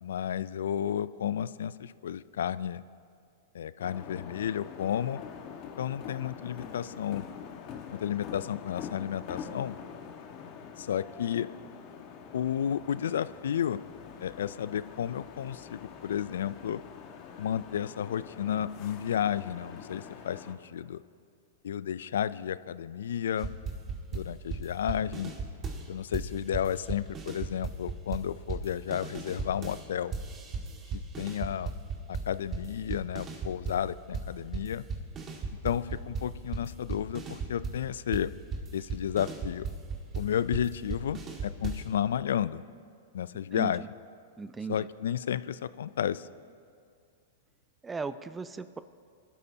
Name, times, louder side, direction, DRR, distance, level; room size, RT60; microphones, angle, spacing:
voice 1, 0.0-2.8 3.5-5.2 5.8-7.3 7.9-9.8 10.8-11.5 12.3-13.8 14.2-16.8 17.4-21.0 21.6-23.5 24.1-25.3 25.9-30.1 30.9-31.8 32.1-34.8 35.6-38.3 38.7-39.7 40.1-42.6 43.1-43.8 44.7-46.3, left 9 dB, 75° left, 17 dB, 0.4 m, -32 dB
sound 1, 3.8-20.5, left 7 dB, 45° left, 1.4 m, -45 dB
sound 2, 23.4-25.9 26.1-29.8 30.1-33.9 34.1-41.9, right 4 dB, 30° right, 1.9 m, -36 dB
voice 2, 43.5-43.9 44.4-44.9 47.8-48.8, right 4 dB, 15° right, 13 dB, 0.4 m, -37 dB
24.0 x 12.5 x 2.8 m, 2.3 s
hypercardioid pair, 115°, 0 cm